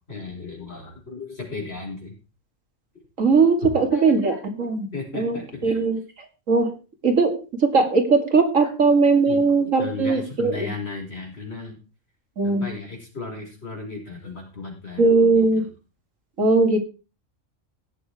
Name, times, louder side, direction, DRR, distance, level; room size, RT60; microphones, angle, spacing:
voice 1, 0.1-2.1 3.6-4.4 4.9-5.9 8.6-8.7 9.3-11.8 12.4-15.7, left 3 dB, 50° left, 0 dB, 5.7 m, -35 dB
voice 2, 3.2-6.0 6.5-6.7 7.0-10.7 12.4-12.7 15.0-15.6 16.4-16.8, right 4 dB, 80° right, 5 dB, 2.7 m, -19 dB
17.5 x 7.0 x 4.9 m, 0.33 s
omnidirectional pair, 1.4 m